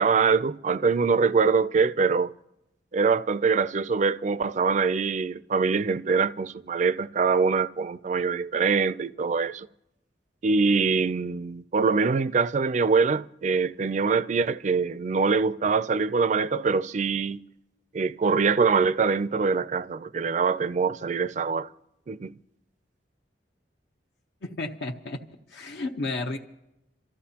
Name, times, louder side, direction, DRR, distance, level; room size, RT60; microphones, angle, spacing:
voice 1, 0.0-2.3 2.9-9.7 10.4-17.4 17.9-21.7 22.1-22.3, right 5 dB, 40° right, 0.4 m, -24 dB
voice 2, 24.4-25.2 25.5-26.4, left 2 dB, 75° left, 0.9 m, -32 dB
28.0 x 14.0 x 2.9 m
head